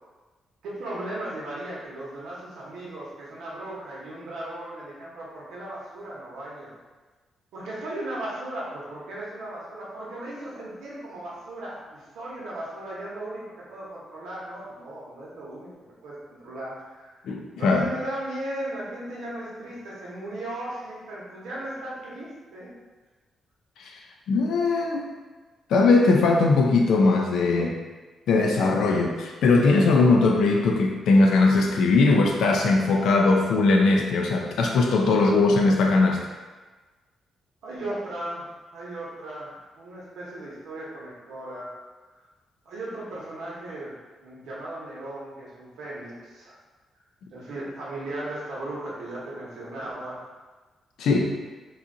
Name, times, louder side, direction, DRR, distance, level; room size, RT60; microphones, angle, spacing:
voice 1, 0.6-6.7 7.5-15.7 16.0-17.2 17.6-22.7 37.6-38.5 38.7-41.7 42.6-43.9 44.2-46.6 47.3-50.3, right 1 dB, 90° right, -6 dB, 0.9 m, -36 dB
voice 2, 17.2-17.9 23.8-23.9 24.3-25.1 25.7-27.8 28.3-36.2 51.0-51.3, left 3 dB, 80° left, 1 dB, 0.4 m, -20 dB
2.8 x 2.4 x 3.7 m, 1.3 s
cardioid pair, 140°, 0 cm